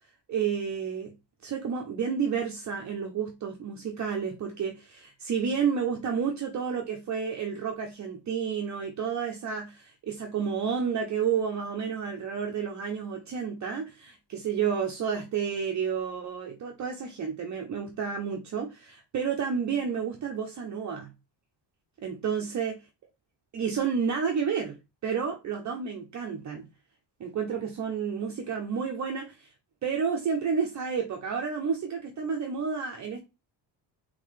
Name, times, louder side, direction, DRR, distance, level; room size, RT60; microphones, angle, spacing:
voice 1, 0.3-1.1 1.4-21.1 22.0-22.8 23.5-24.8 25.0-26.7 27.2-29.5 29.8-33.3, right 6 dB, 40° right, 0.6 m, -30 dB
3.7 x 3.4 x 3.2 m
cardioid pair, 160°, 45 cm